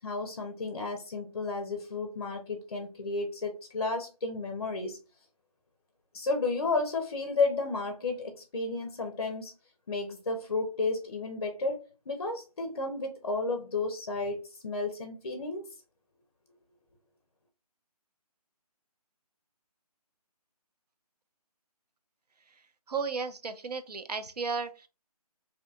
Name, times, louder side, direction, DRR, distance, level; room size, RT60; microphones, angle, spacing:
voice 1, 0.0-5.0 6.1-9.5 9.9-15.7, left 3 dB, 45° left, 5 dB, 0.5 m, -32 dB
voice 2, 22.9-24.9, right 5 dB, 80° right, 10 dB, 0.5 m, -34 dB
2.6 x 2.2 x 2.6 m, 0.30 s
figure-of-eight pair, 160°, 20 cm